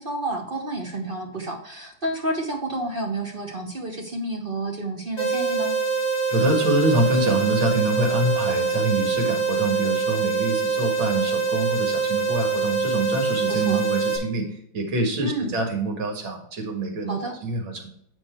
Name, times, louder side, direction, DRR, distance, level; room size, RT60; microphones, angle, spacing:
voice 1, 0.0-5.7 13.5-13.8 15.2-15.5 17.1-17.4, right 2 dB, 45° right, 2 dB, 0.7 m, -30 dB
sound 1, 5.2-14.2, right 5 dB, 35° left, 2.4 m, -24 dB
voice 2, 6.3-17.2 17.4-17.9, right 2 dB, 75° right, 3 dB, 2.6 m, -25 dB
9.4 x 4.6 x 4.4 m, 0.67 s
omnidirectional pair, 2.2 m